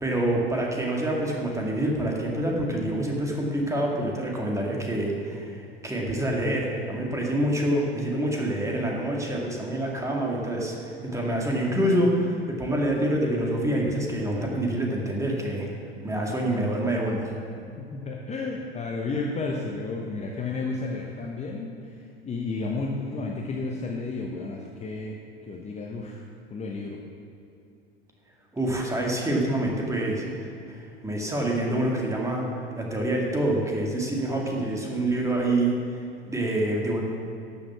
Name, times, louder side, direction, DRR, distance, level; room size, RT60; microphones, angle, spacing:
voice 1, 0.0-15.7 16.0-17.3 28.5-37.0, right 1 dB, 10° right, -1 dB, 2.1 m, -26 dB
voice 2, 17.8-26.2 26.5-27.0, left 3 dB, 20° left, 0 dB, 1.0 m, -32 dB
12.5 x 7.2 x 5.9 m, 2.6 s
figure-of-eight pair, 75°, 31 cm